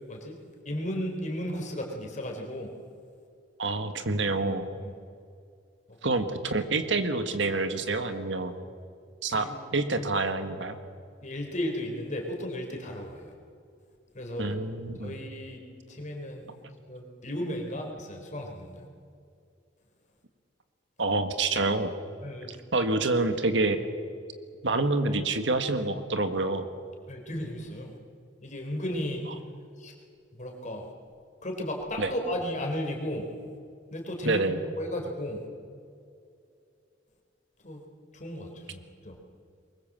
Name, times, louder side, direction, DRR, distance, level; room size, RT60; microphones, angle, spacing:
voice 1, 0.6-2.7 4.8-4.9 5.9-6.0 9.3-9.5 11.2-13.3 14.1-14.5 15.0-15.6 15.9-16.5 16.9-18.8 22.2-22.5 27.1-27.9 28.4-29.3 29.8-29.9 30.4-30.9 31.4-33.3 33.9-34.4 34.8-35.4 37.6-37.8 38.1-39.2, equal, 40° left, 2 dB, 4.1 m, -34 dB
voice 2, 3.6-4.6 6.0-8.5 9.2-10.8 14.4-15.2 21.0-21.9 22.5-23.8 24.6-26.7 32.0-32.1 34.2-34.6, right 3 dB, 70° right, 8 dB, 1.7 m, -27 dB
23.0 x 21.0 x 7.6 m, 2.4 s
head